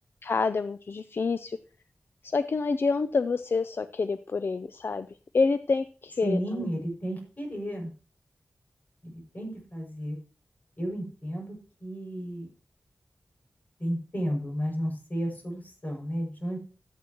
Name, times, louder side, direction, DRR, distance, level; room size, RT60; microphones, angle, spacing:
voice 1, 0.2-1.6 2.2-5.1 5.3-6.7, left 4 dB, 65° left, 13 dB, 0.5 m, -27 dB
voice 2, 6.2-7.9 9.0-10.2 10.8-12.5 13.8-16.6, equal, 40° left, 1 dB, 6.3 m, -33 dB
13.0 x 9.5 x 3.0 m, 0.37 s
cardioid pair, 50°, 4 cm